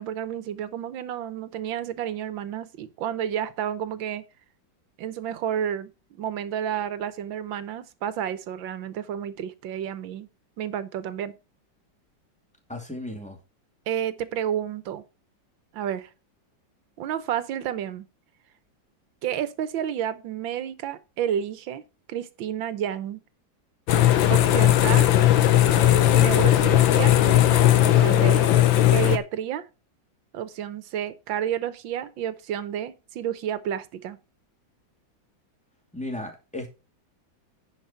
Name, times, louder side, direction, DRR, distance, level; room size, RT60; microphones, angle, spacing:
voice 1, 0.0-4.2 5.0-10.3 10.6-11.3 13.9-15.0 15.7-16.1 17.0-18.1 19.2-21.8 22.1-23.2 24.3-25.1 26.1-27.2 27.8-28.5 28.9-29.6 30.3-34.2, right 9 dB, 85° right, 1.6 m, -30 dB
voice 2, 12.7-13.4 35.9-36.7, left 1 dB, 5° left, 2.2 m, -35 dB
sound 1, 23.9-29.2, left 12 dB, 90° left, 1.6 m, -18 dB
10.0 x 5.2 x 5.6 m
omnidirectional pair, 2.1 m